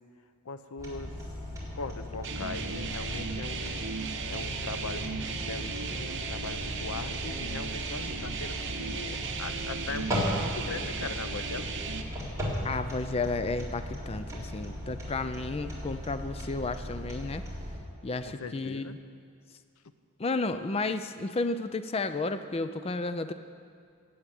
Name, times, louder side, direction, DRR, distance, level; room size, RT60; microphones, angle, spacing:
voice 1, 0.4-1.2 1.7-11.7 18.2-18.9, left 4 dB, 90° left, 11 dB, 0.8 m, -40 dB
sound 1, 0.8-17.8, equal, 15° right, 3.6 m, -37 dB
sound 2, 2.2-12.0, right 5 dB, 60° right, 1.2 m, -36 dB
voice 2, 12.6-17.4 18.0-19.0 20.2-23.3, left 3 dB, 30° left, 10 dB, 0.5 m, -32 dB
17.0 x 8.0 x 9.0 m, 2.3 s
head